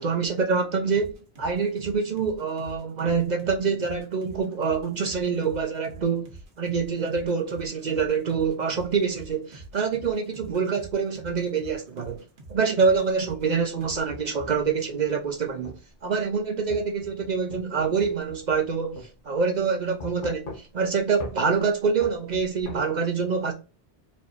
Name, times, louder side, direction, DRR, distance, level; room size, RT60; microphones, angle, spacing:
voice 1, 0.0-12.2 12.5-15.7 16.0-23.5, right 5 dB, 50° right, 0.6 m, -26 dB
sound 1, 0.9-13.5 13.8-14.0, right 2 dB, 80° right, 1.4 m, -46 dB
sound 2, 13.2-14.7 15.6-15.8 16.7-18.7 19.0-19.1 20.0-20.9 21.2-21.4 22.0-22.8, left 2 dB, 50° left, 1.0 m, -40 dB
4.2 x 3.1 x 2.5 m
omnidirectional pair, 1.1 m